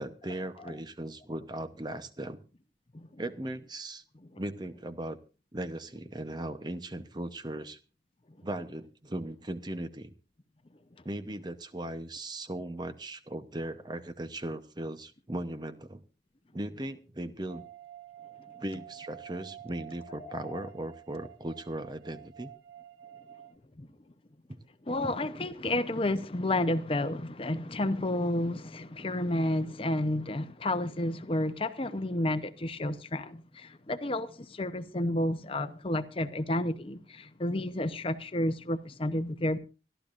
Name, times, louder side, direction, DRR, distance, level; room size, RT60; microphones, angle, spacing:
voice 1, 0.0-2.4 3.2-4.0 4.4-5.2 5.5-7.8 8.4-10.1 11.0-16.0 16.5-17.6 18.6-22.5 24.5-24.6, right 1 dB, 25° right, 0.8 m, -38 dB
sound 1, 17.5-23.5, right 11 dB, 90° right, 2.2 m, -50 dB
voice 2, 20.2-20.6 23.8-23.9 24.9-39.6, left 1 dB, 30° left, 0.8 m, -31 dB
26.0 x 12.5 x 2.5 m
head